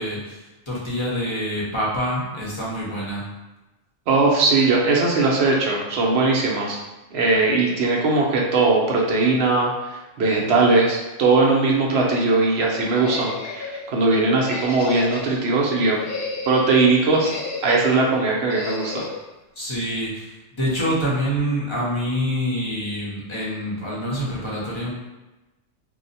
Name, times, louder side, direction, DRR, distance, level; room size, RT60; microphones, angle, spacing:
voice 1, 0.0-3.2 19.6-24.9, equal, 30° left, -6 dB, 0.7 m, -26 dB
voice 2, 4.1-6.8 7.1-16.0 16.5-17.3 17.6-19.1, right 3 dB, 65° right, -1 dB, 0.8 m, -19 dB
sound 1, 12.9-13.9 14.4-15.4 15.9-16.7 17.2-18.0 18.5-19.2, left 4 dB, 60° left, 0.6 m, -32 dB
2.7 x 2.0 x 3.9 m, 1.1 s
omnidirectional pair, 1.3 m